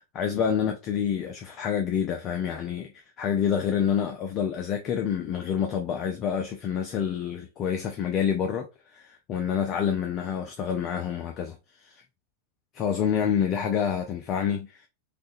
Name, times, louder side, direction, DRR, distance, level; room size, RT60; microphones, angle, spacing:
voice 1, 0.0-12.0 12.7-14.9, left 8 dB, 35° left, 0.4 m, -28 dB
3.3 x 2.1 x 2.5 m
figure-of-eight pair, 90°, 0 cm